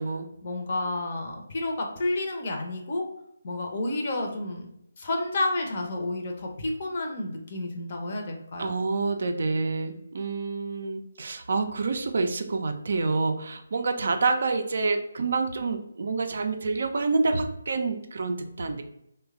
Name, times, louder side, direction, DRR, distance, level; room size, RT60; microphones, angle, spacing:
voice 1, 0.4-3.0 3.4-4.7 5.0-8.7, left 2 dB, 40° left, 2 dB, 0.6 m, -30 dB
voice 2, 8.6-18.8, right 3 dB, 50° right, 6 dB, 0.3 m, -27 dB
3.0 x 2.2 x 3.5 m, 0.78 s
figure-of-eight pair, 145°, 0 cm